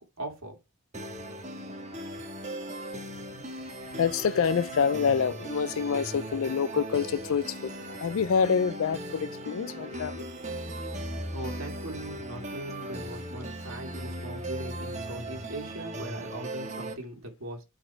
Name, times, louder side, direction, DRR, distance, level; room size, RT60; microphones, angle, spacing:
voice 1, 0.2-0.6 11.3-17.6, right 1 dB, 75° right, 2.2 m, -40 dB
sound 1, 0.9-16.9, right 1 dB, 35° right, 1.5 m, -38 dB
voice 2, 3.2-10.3, left 6 dB, 70° left, 0.4 m, -27 dB
7.8 x 4.2 x 4.5 m
head